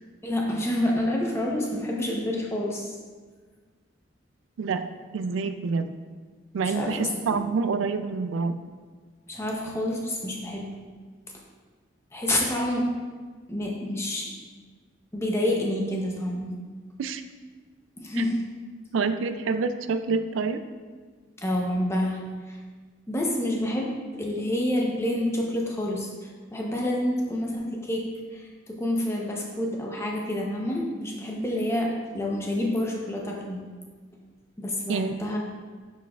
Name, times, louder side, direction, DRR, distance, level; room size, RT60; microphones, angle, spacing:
voice 1, 0.2-3.0 6.6-7.4 9.3-10.7 12.1-12.9 13.5-14.3 15.1-16.5 18.0-18.4 21.4-22.2 22.5-22.6 23.1-33.7 34.6-35.4, left 1 dB, 15° left, -1 dB, 0.7 m, -28 dB
voice 2, 5.1-6.0 6.5-8.6 17.0-17.2 18.9-20.6 34.9-35.1, right 4 dB, 85° right, 10 dB, 0.4 m, -27 dB
6.7 x 6.1 x 2.4 m, 1.5 s
head